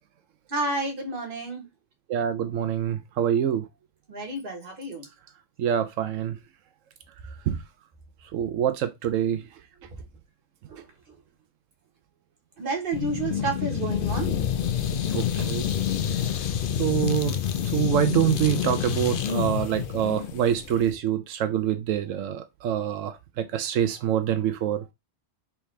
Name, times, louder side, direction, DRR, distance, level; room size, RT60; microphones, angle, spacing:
voice 1, 0.5-1.6 4.1-5.1 10.7-10.8 12.6-14.4 15.4-15.5, right 3 dB, 45° right, 1.4 m, -30 dB
voice 2, 2.1-3.7 5.6-6.4 7.5-7.6 8.3-9.4 15.1-15.7 16.8-17.4 17.6-24.9, right 10 dB, 90° right, 1.0 m, -25 dB
sound 1, 12.9-20.9, left 9 dB, 60° left, 0.6 m, -28 dB
4.5 x 3.5 x 3.2 m
omnidirectional pair, 1.3 m